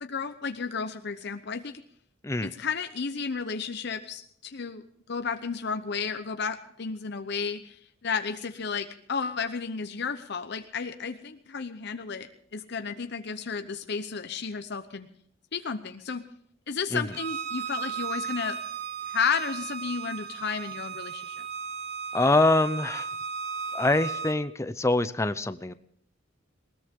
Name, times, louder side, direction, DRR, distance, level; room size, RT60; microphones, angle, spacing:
voice 1, 0.0-1.8 2.4-15.1 15.5-16.2 16.7-18.6 19.1-21.5, left 5 dB, 60° left, 8 dB, 0.8 m, -33 dB
voice 2, 2.2-2.5 16.9-17.1 22.1-23.1 23.7-25.7, left 2 dB, 15° left, 12 dB, 0.6 m, -24 dB
Bowed string instrument, 17.1-24.4, right 6 dB, 55° right, 1.2 m, -35 dB
20.5 x 19.5 x 3.7 m, 0.65 s
head